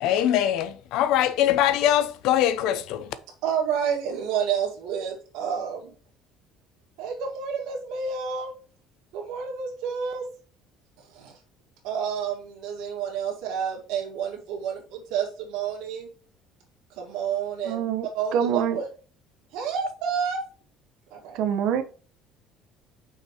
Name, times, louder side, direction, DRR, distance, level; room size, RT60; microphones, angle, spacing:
voice 1, 0.0-3.1, left 11 dB, 65° left, 0.6 m, -22 dB
voice 2, 3.4-5.9 7.0-8.5 9.1-10.3 11.0-11.4 11.8-16.1 17.0-17.9 18.1-18.9 19.5-20.4 21.1-21.4, right 7 dB, 80° right, 2.1 m, -29 dB
voice 3, 17.6-18.1 18.3-18.8 21.3-21.8, right 8 dB, 60° right, 0.9 m, -25 dB
5.8 x 4.8 x 4.4 m
cardioid pair, 170°, 0 cm